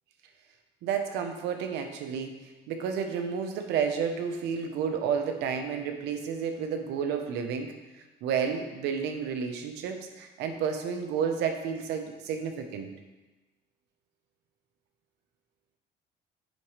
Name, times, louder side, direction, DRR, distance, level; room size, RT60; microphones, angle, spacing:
voice 1, 0.8-2.3 2.7-7.7 8.2-12.9, right 7 dB, 90° right, 5 dB, 1.1 m, -31 dB
9.8 x 7.2 x 3.4 m, 1.1 s
cardioid pair, 110°, 17 cm